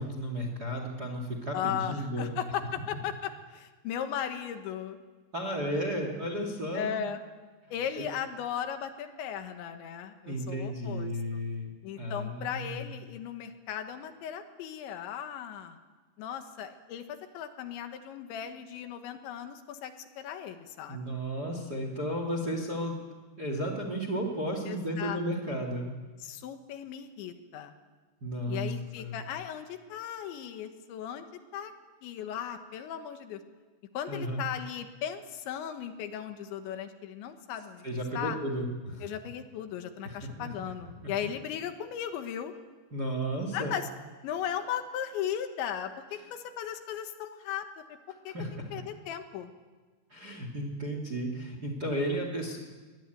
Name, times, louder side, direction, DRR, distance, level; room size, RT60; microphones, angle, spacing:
voice 1, 0.0-2.4 5.3-6.9 8.0-8.1 10.3-11.7 12.0-12.9 20.9-23.0 23.4-25.9 28.2-28.7 29.0-29.2 34.1-34.4 37.8-39.1 40.0-40.5 41.0-41.1 42.9-43.7 48.3-48.6 50.1-52.6, equal, 30° right, 4 dB, 1.8 m, -33 dB
voice 2, 1.5-5.0 6.7-7.2 7.7-11.4 11.8-15.8 16.2-21.2 24.7-25.2 25.5-25.6 26.2-27.8 28.5-31.3 31.5-31.7 32.0-33.4 34.0-37.8 38.2-38.4 39.0-42.5 43.5-43.9 44.2-47.7 48.3-48.4 48.7-49.5, left 9 dB, 75° left, 7 dB, 3.7 m, -37 dB
24.0 x 20.5 x 9.3 m, 1.4 s
omnidirectional pair, 5.4 m